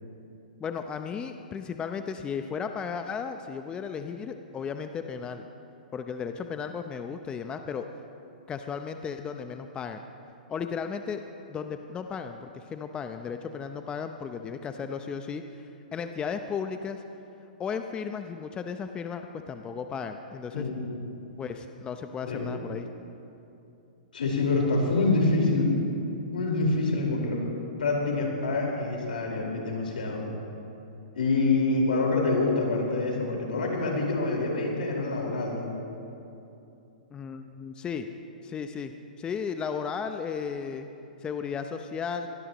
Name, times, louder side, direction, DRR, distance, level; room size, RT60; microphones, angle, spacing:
voice 1, 0.6-5.5 5.9-7.9 8.5-10.0 10.5-11.2 11.5-17.0 17.6-20.7 21.4-22.9 37.1-38.1 38.4-38.9 39.2-40.9 41.2-42.3, left 6 dB, 20° left, 7 dB, 0.6 m, -35 dB
voice 2, 20.5-20.9 22.3-22.5 24.1-25.7 26.3-27.4 27.8-30.3 31.1-35.7, left 3 dB, 80° left, -1 dB, 4.6 m, -26 dB
24.0 x 18.0 x 3.1 m, 2.8 s
hypercardioid pair, 125°, 5 cm